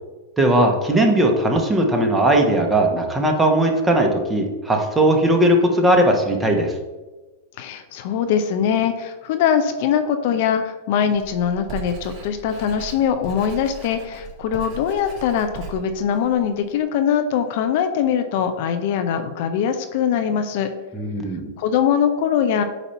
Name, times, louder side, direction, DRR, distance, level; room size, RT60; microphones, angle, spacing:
voice 1, 0.4-6.7 20.9-21.5, right 1 dB, 10° right, 2 dB, 1.3 m, -18 dB
voice 2, 7.6-20.7 21.6-22.6, left 8 dB, 60° left, 8 dB, 0.6 m, -22 dB
Writing, 11.1-16.8, right 5 dB, 35° right, 2.2 m, -38 dB
8.3 x 2.8 x 5.6 m, 1.2 s
hypercardioid pair, 105°, 0 cm